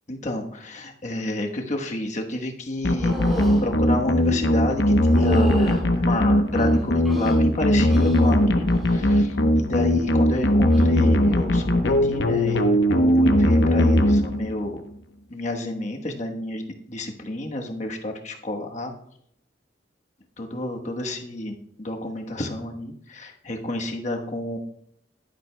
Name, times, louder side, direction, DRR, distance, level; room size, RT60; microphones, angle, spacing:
voice 1, 0.1-12.6 12.9-14.8 15.3-18.9 20.4-24.6, left 1 dB, 40° left, 3 dB, 1.1 m, -30 dB
sound 1, 2.8-14.7, left 1 dB, 65° left, 0.9 m, -19 dB
sound 2, 3.0-3.6 5.1-5.8 6.6-7.4 7.9-8.3 8.7-9.1 10.7-10.8, right 1 dB, ahead, 2.3 m, -31 dB
11.5 x 11.0 x 2.2 m, 0.71 s
head